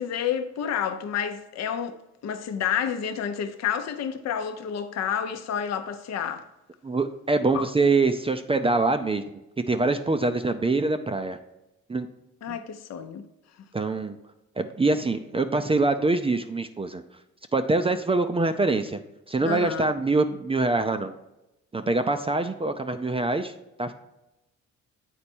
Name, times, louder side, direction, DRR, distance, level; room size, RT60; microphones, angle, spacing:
voice 1, 0.0-6.4 7.5-7.7 12.4-13.2 19.4-19.9, left 8 dB, 60° left, 0.7 m, -29 dB
voice 2, 6.8-9.4 9.7-11.4 11.9-12.1 12.5-12.6 13.7-14.2 14.6-17.0 17.5-19.0 19.3-21.1 21.7-23.5 23.8-23.9, right 3 dB, 20° right, 0.4 m, -24 dB
8.4 x 4.3 x 4.4 m
cardioid pair, 90°, 30 cm